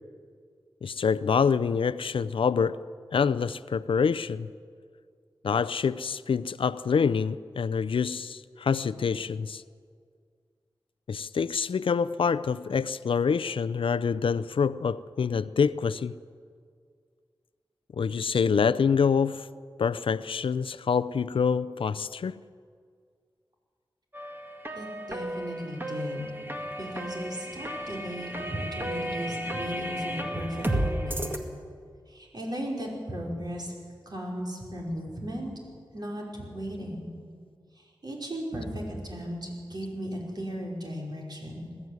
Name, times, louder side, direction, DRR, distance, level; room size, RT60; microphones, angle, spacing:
voice 1, 0.8-2.8 3.1-4.5 5.4-9.6 11.1-16.2 17.9-19.5 19.8-22.4, left 6 dB, 85° left, 0.5 m, -26 dB
sound 1, 24.1-31.4, equal, 25° right, 2.2 m, -33 dB
voice 2, 24.8-26.3 26.7-31.3 32.1-33.7 34.0-35.5 35.9-37.1 38.0-41.7, equal, 50° right, 5.2 m, -36 dB
21.0 x 14.0 x 9.5 m
wide cardioid pair, 75°, 9 cm